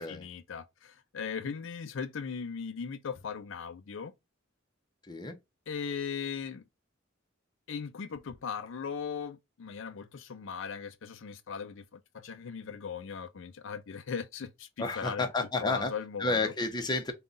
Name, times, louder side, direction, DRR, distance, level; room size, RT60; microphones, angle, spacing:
voice 1, 0.0-4.1 5.7-6.6 7.7-15.3 15.6-16.5, left 6 dB, 65° left, 0.5 m, -38 dB
voice 2, 14.8-15.9 16.2-17.1, left 3 dB, 20° left, 0.6 m, -31 dB
3.7 x 2.3 x 3.9 m
head